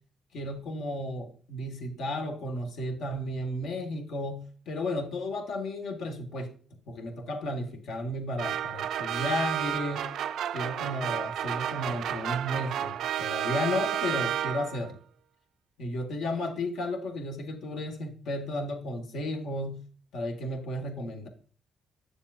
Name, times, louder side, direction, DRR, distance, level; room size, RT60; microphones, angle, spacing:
voice 1, 0.3-6.5 6.9-10.1 10.5-15.0 15.8-19.8 20.1-21.3, left 1 dB, 80° left, 4 dB, 1.6 m, -33 dB
sound 1, 8.4-14.9, right 11 dB, 75° right, 0.3 m, -31 dB
8.4 x 7.3 x 2.6 m, 0.42 s
cardioid pair, 90°, 0 cm